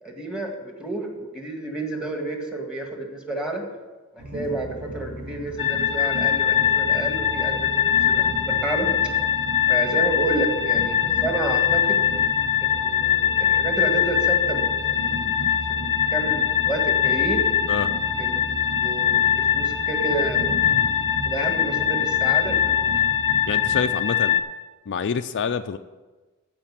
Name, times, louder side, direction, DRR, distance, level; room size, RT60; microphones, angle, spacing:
voice 1, 0.0-3.6 4.1-8.9 9.7-12.0 12.6-14.6 14.9-15.1 15.7-17.4 18.2-18.4 18.8-19.2 19.5-20.4 21.2-22.8, right 2 dB, 5° right, 2 dB, 1.8 m, -30 dB
Train, 4.2-23.9, right 1 dB, 70° right, 3.3 m, -36 dB
sound 1, 5.6-24.4, left 9 dB, 25° left, 0.9 m, -22 dB
voice 2, 23.5-24.4 24.9-25.8, left 6 dB, 55° left, 9 dB, 0.4 m, -27 dB
14.5 x 5.2 x 7.4 m, 1.2 s
head